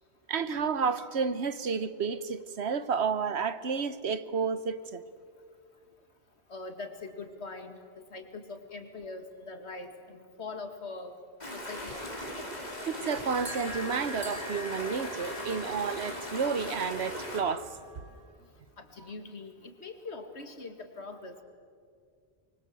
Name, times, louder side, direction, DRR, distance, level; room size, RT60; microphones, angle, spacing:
voice 1, 0.3-5.0 12.9-17.7, right 5 dB, 80° right, 1.3 m, -31 dB
voice 2, 6.5-11.2 11.5-12.0 18.8-21.4, left 3 dB, 90° left, 2.4 m, -42 dB
sound 1, 11.4-17.4, left 1 dB, 40° left, 3.6 m, -39 dB
sound 2, 13.2-18.2, left 1 dB, 50° right, 4.8 m, -45 dB
24.5 x 24.0 x 7.7 m
omnidirectional pair, 1.1 m